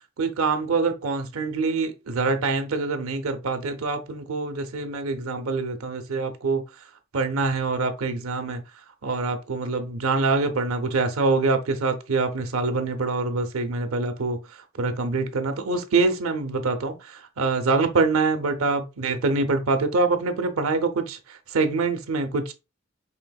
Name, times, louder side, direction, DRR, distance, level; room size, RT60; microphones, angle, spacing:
voice 1, 0.2-6.6 7.1-8.6 9.0-14.4 14.8-22.5, right 3 dB, 90° right, 0.7 m, -25 dB
5.0 x 3.4 x 2.3 m
head